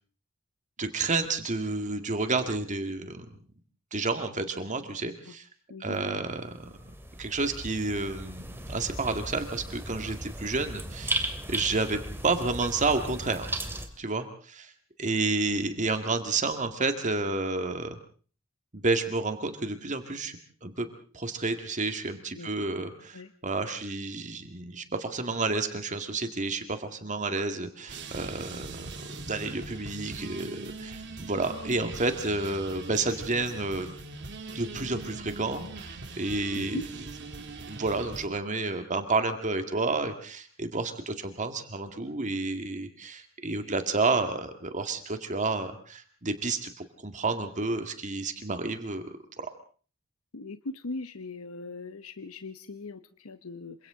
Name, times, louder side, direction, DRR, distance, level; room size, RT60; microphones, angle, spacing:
voice 1, 0.8-3.3 3.9-5.5 5.8-6.8 7.2-12.0 12.2-13.5 14.0-14.7 15.0-18.0 18.7-20.9 21.1-23.2 23.4-33.9 34.5-36.8 37.4-49.0 49.4-49.5, right 3 dB, 35° right, 7 dB, 2.0 m, -30 dB
voice 2, 5.7-6.2 22.3-22.7 23.1-23.3 36.5-36.9 50.3-53.9, left 3 dB, 85° left, 11 dB, 0.9 m, -40 dB
sound 1, 6.3-13.9, right 1 dB, 10° right, 2.6 m, -36 dB
sound 2, 27.9-38.3, right 3 dB, 55° right, 2.7 m, -41 dB
28.0 x 25.5 x 3.8 m, 0.42 s
head